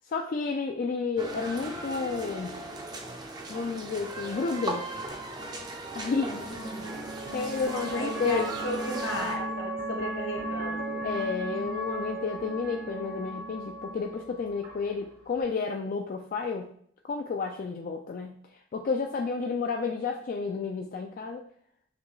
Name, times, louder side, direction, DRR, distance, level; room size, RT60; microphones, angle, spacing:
voice 1, 0.0-2.5 3.5-4.9 5.9-6.5 7.3-8.5 11.0-16.7 17.0-21.4, left 4 dB, 45° left, 2 dB, 0.3 m, -31 dB
sound 1, 1.2-9.4, right 2 dB, 20° right, 0.5 m, -38 dB
sound 2, 5.1-15.4, right 1 dB, 50° right, 0.7 m, -37 dB
voice 2, 6.3-7.1 7.9-11.0, left 1 dB, 75° left, 0 dB, 1.3 m, -35 dB
5.8 x 2.3 x 3.0 m, 0.63 s
head